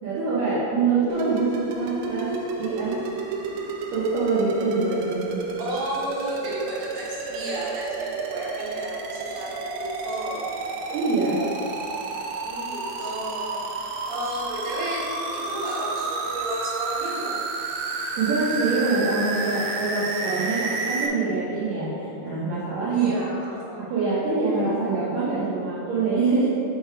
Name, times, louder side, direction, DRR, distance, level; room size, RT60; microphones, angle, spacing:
voice 1, 0.0-3.0 3.9-5.5 10.9-11.4 18.2-23.2 23.8-26.5, right 3 dB, 70° right, -9 dB, 2.2 m, -25 dB
sound 1, 1.1-21.1, right 3 dB, 85° right, 3.0 m, -31 dB
voice 2, 5.6-10.5 12.4-13.6 14.1-15.0 15.3-17.3 22.9-23.8, right 1 dB, 50° right, -7 dB, 2.1 m, -33 dB
5.6 x 5.4 x 4.9 m, 2.7 s
omnidirectional pair, 5.3 m